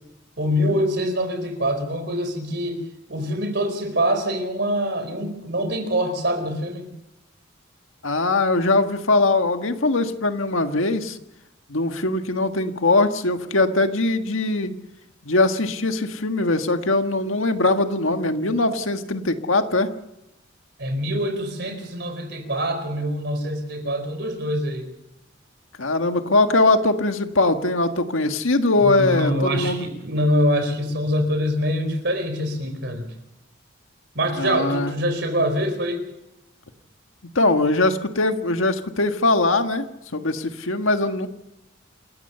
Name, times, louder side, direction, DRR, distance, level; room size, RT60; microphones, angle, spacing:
voice 1, 0.4-2.8 3.1-6.9 20.8-24.9 28.8-33.0 34.1-36.0, equal, 55° right, 8 dB, 4.4 m, -24 dB
voice 2, 8.0-11.2 11.7-14.7 15.2-19.9 25.8-29.9 34.4-34.9 37.3-39.8 40.1-41.3, left 2 dB, 80° left, 7 dB, 1.7 m, -21 dB
28.0 x 15.0 x 6.9 m, 0.89 s
head